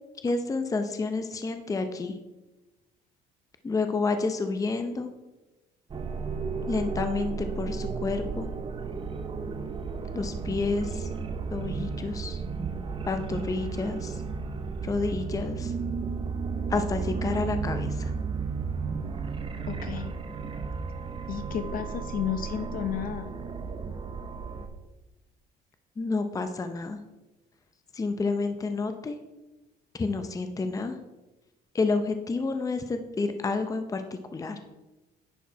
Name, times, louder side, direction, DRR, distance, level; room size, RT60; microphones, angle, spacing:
voice 1, 0.2-2.1 3.6-5.1 6.7-8.5 10.1-11.1 11.5-12.4 13.0-14.2 14.8-15.7 16.7-18.1 26.0-27.0 27.9-29.2 29.9-31.0 31.7-34.0 34.3-34.6, left 3 dB, 20° left, 8 dB, 0.6 m, -29 dB
sound 1, 5.9-24.7, right 5 dB, 30° right, 0.9 m, -33 dB
voice 2, 19.7-20.2 21.3-23.3, left 9 dB, 55° left, 9 dB, 0.9 m, -32 dB
10.0 x 4.6 x 4.6 m, 1.0 s
cardioid pair, 110°, 17 cm